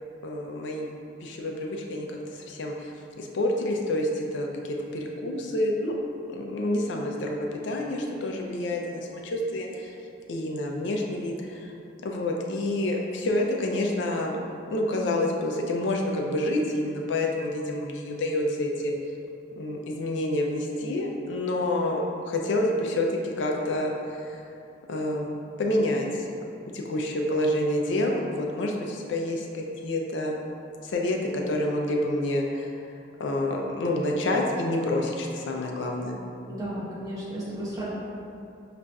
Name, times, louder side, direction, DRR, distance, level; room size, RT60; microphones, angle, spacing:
voice 1, 0.2-0.9 1.2-5.9 6.3-9.9 10.3-11.7 12.0-14.4 14.7-18.9 19.6-24.4 24.9-26.3 26.7-30.4 30.8-32.7 33.2-36.2, left 1 dB, 85° left, 0 dB, 0.4 m, -28 dB
voice 2, 36.5-37.9, right 1 dB, 20° right, -9 dB, 0.8 m, -34 dB
5.1 x 2.4 x 2.3 m, 2.5 s
head